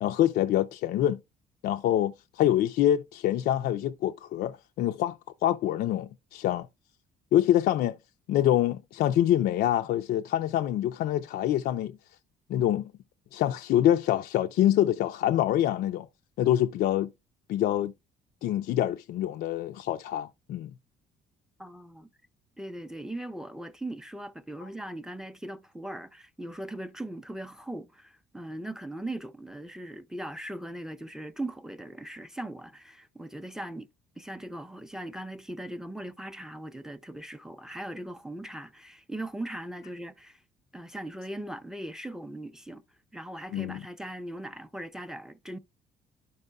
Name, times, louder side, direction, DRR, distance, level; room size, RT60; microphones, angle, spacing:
voice 1, 0.0-1.2 1.6-6.7 7.3-8.0 8.3-12.0 12.5-12.9 13.3-16.1 16.4-17.1 17.5-17.9 18.4-20.7 43.5-43.8, left 12 dB, 65° left, 0.4 m, -25 dB
voice 2, 21.6-22.1 22.6-33.9 34.2-40.4 40.7-42.8 43.1-45.6, right 1 dB, 5° right, 0.5 m, -39 dB
11.5 x 5.4 x 2.3 m
cardioid pair, 110°, 17 cm